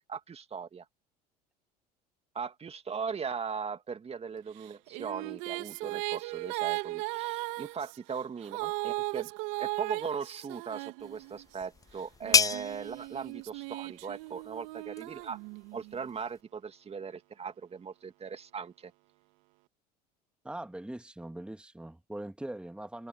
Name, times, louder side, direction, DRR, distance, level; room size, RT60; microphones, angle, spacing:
voice 1, 0.1-0.8 2.3-9.3 9.6-15.4 15.7-18.9, right 6 dB, 30° right, 2.2 m, -39 dB
Female singing, 4.6-11.5 12.2-16.0, right 26 dB, 70° right, 2.5 m, -37 dB
sound 1, 11.0-16.4, left 5 dB, 15° left, 0.5 m, -33 dB
voice 2, 20.4-23.1, right 1 dB, 5° right, 1.9 m, -41 dB
hypercardioid pair, 75°, 21 cm